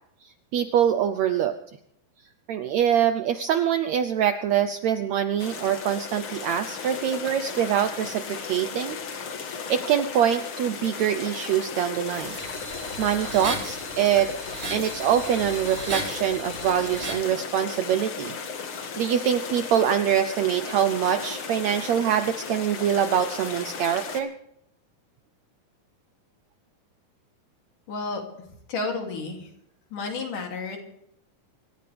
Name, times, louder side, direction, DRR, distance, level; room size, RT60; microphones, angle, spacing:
voice 1, 0.2-1.6 2.5-9.0 9.7-12.4 12.7-14.3 14.7-24.3, right 9 dB, 80° right, 9 dB, 1.6 m, -24 dB
sound 1, 5.4-24.2, left 6 dB, 45° left, 1.9 m, -36 dB
sound 2, 12.0-17.3, right 2 dB, 35° right, 3.7 m, -36 dB
voice 2, 27.9-28.2 28.7-29.5 29.9-30.8, left 3 dB, 65° left, 2 dB, 4.4 m, -31 dB
26.0 x 14.0 x 3.5 m, 0.74 s
omnidirectional pair, 4.0 m